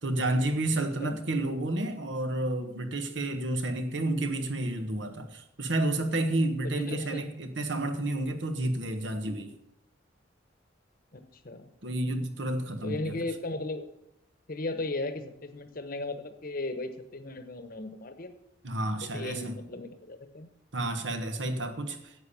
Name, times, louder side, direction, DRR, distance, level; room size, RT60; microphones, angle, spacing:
voice 1, 0.0-9.5 11.8-13.2 18.6-19.5 20.7-22.3, right 1 dB, 70° right, 7 dB, 1.4 m, -30 dB
voice 2, 6.6-7.3 11.1-11.7 12.8-13.9 14.5-18.3 19.0-20.5, left 2 dB, 50° left, 9 dB, 1.1 m, -36 dB
11.0 x 8.5 x 7.1 m, 0.79 s
head